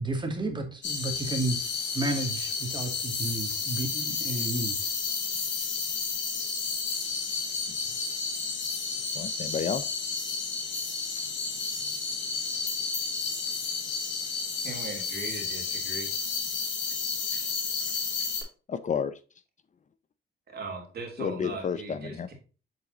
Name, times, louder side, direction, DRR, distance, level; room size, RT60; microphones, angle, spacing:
voice 1, 0.0-4.9, right 2 dB, 25° right, 3 dB, 2.0 m, -32 dB
sound 1, 0.8-18.4, left 4 dB, 65° left, 3.8 m, -31 dB
voice 2, 9.1-9.9 18.7-19.2 21.2-22.3, left 6 dB, 40° left, 13 dB, 0.6 m, -31 dB
voice 3, 14.6-16.1 17.3-17.5 20.5-22.3, right 3 dB, 55° right, 1 dB, 2.8 m, -39 dB
7.6 x 4.0 x 3.8 m, 0.35 s
cardioid pair, 90°, 20 cm